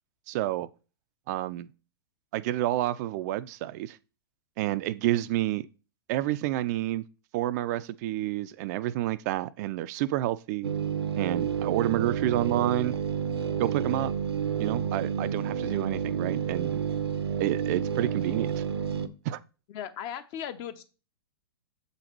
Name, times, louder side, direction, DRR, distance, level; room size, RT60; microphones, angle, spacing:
voice 1, 0.3-0.7 1.3-1.7 2.3-4.0 4.6-5.7 6.1-7.0 7.3-10.7 11.2-12.9 13.6-14.1 14.6-16.8 17.4-18.6 19.3-19.4, right 14 dB, 40° right, 0.4 m, -29 dB
sound 1, 10.6-19.1, right 7 dB, 85° right, 0.7 m, -30 dB
voice 2, 19.7-20.8, left 9 dB, 40° left, 0.8 m, -37 dB
6.9 x 4.0 x 4.5 m
hypercardioid pair, 110°, 13 cm